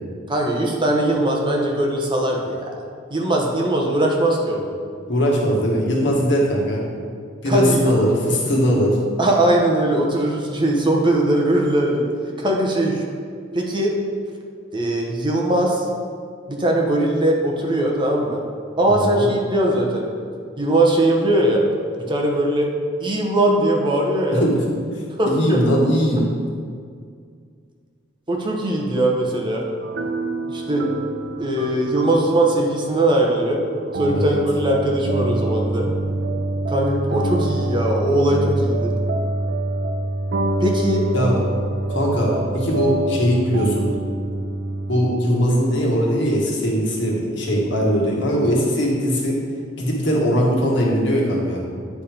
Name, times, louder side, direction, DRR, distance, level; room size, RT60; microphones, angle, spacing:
voice 1, 0.3-2.7 3.1-4.7 7.5-7.8 9.2-12.1 12.4-13.0 13.5-14.0 14.7-15.9 16.5-18.4 18.8-20.1 20.6-21.6 22.1-22.7 23.0-24.4 25.2-25.6 28.3-29.6 30.5-30.9 31.4-33.6 33.9-35.9 36.7-38.9 40.6-41.0, right 1 dB, 25° right, -1 dB, 0.9 m, -20 dB
voice 2, 5.0-6.8 7.4-9.0 19.0-19.3 24.3-24.6 25.0-26.3 34.1-34.4 41.1-41.4 41.9-43.9 44.9-49.4 49.8-51.6, equal, 65° left, -3 dB, 1.7 m, -20 dB
sound 1, 29.8-45.1, right 2 dB, 60° right, 0.5 m, -26 dB
9.3 x 4.3 x 5.2 m, 2.1 s
head